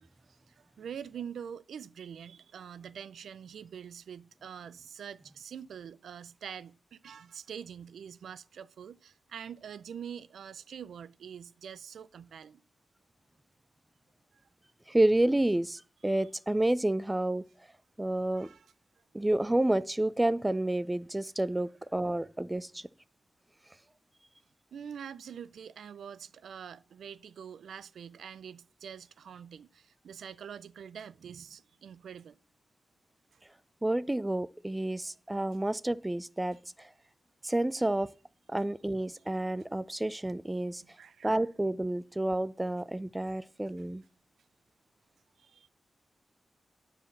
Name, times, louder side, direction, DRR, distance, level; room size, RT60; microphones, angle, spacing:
voice 1, 0.0-12.6 14.3-14.4 16.1-16.2 18.3-18.7 24.7-32.4 33.3-33.4 37.4-37.5 39.6-39.7 40.8-41.4 45.4-45.7, right 8 dB, 90° right, 0.4 m, -45 dB
voice 2, 14.9-17.4 18.0-18.5 19.1-22.9 33.8-36.9 37.4-38.1 38.5-40.8 41.2-44.0, right 1 dB, 15° right, 0.4 m, -29 dB
9.8 x 4.8 x 7.3 m
cardioid pair, 65°, 0 cm